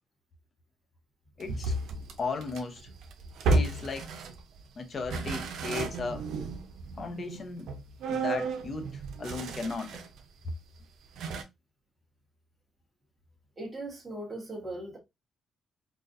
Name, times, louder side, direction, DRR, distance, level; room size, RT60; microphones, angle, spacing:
voice 1, 1.4-1.7 2.2-2.8 3.5-4.1 4.8-6.3 7.0-7.7 8.1-9.9, left 4 dB, 45° left, 0.8 m, -36 dB
sound 1, 1.4-4.6 5.0-10.2 10.5-10.6 11.2-11.4, right 3 dB, 80° right, 0.6 m, -32 dB
voice 2, 13.6-15.0, right 1 dB, 15° right, 1.3 m, -39 dB
4.1 x 2.4 x 2.6 m
cardioid pair, 90°, 0 cm